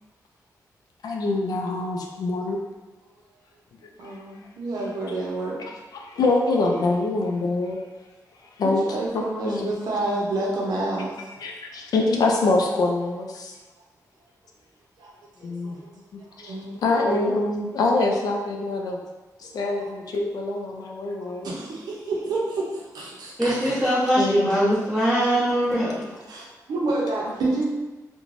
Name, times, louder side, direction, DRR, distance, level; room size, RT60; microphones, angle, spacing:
voice 1, 1.0-2.6 4.0-4.2 5.6-7.8 8.6-8.9 9.1-9.7 11.4-13.5 15.4-15.8 16.1-16.6 16.8-19.0 19.4-21.5 24.2-24.8, left 2 dB, 75° left, 1 dB, 0.4 m, -25 dB
voice 2, 4.0-5.6 8.6-11.2 15.0-15.1 15.6-15.8 16.4-17.4 19.6-19.9 21.2-23.9 26.3-27.7, right 2 dB, 85° right, -4 dB, 0.5 m, -29 dB
voice 3, 23.4-26.1, equal, ahead, -16 dB, 1.0 m, -22 dB
3.1 x 2.1 x 2.5 m, 1.2 s
wide cardioid pair, 145°, 7 cm